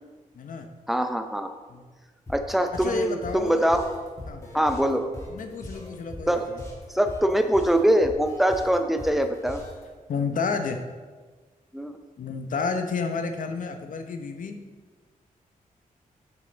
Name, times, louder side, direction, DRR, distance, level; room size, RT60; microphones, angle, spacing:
voice 1, 0.3-0.7 1.7-1.9 2.7-3.8 4.2-4.9 5.3-6.6 10.1-10.8 12.2-14.6, left 4 dB, 65° left, 7 dB, 0.8 m, -31 dB
voice 2, 0.9-1.5 2.3-3.8 4.5-5.1 6.3-6.5 6.9-9.6 11.7-12.0, right 1 dB, ahead, 7 dB, 0.5 m, -23 dB
sound 1, 2.3-9.8, left 1 dB, 20° left, 1.8 m, -41 dB
7.3 x 6.8 x 4.0 m, 1.4 s
wide cardioid pair, 125°, 14 cm